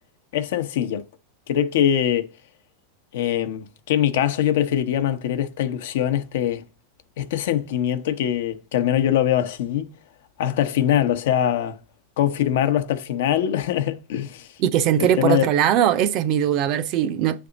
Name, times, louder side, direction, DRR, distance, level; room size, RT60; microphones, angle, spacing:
voice 1, 0.3-1.0 1.5-2.3 3.1-6.6 7.2-9.9 10.4-11.8 12.2-14.5 15.0-15.5, left 10 dB, 70° left, 0.8 m, -22 dB
voice 2, 14.6-17.5, right 10 dB, 40° right, 0.5 m, -20 dB
8.8 x 3.4 x 3.9 m
supercardioid pair, 155°, 0 cm